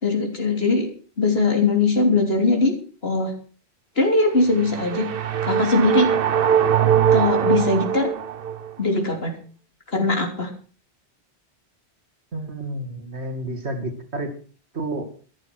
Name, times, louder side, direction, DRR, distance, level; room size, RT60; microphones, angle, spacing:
voice 1, 0.0-0.9 1.2-2.7 3.0-3.3 4.0-5.1 5.4-6.1 7.1-8.1 8.8-9.4 9.9-10.5, left 3 dB, 65° left, 3 dB, 3.7 m, -20 dB
sound 1, 4.4-8.7, right 9 dB, 60° right, 1.0 m, -21 dB
voice 2, 12.3-14.3 14.7-15.0, right 1 dB, 80° right, 5 dB, 2.8 m, -30 dB
14.0 x 11.5 x 6.2 m, 0.41 s
omnidirectional pair, 1.1 m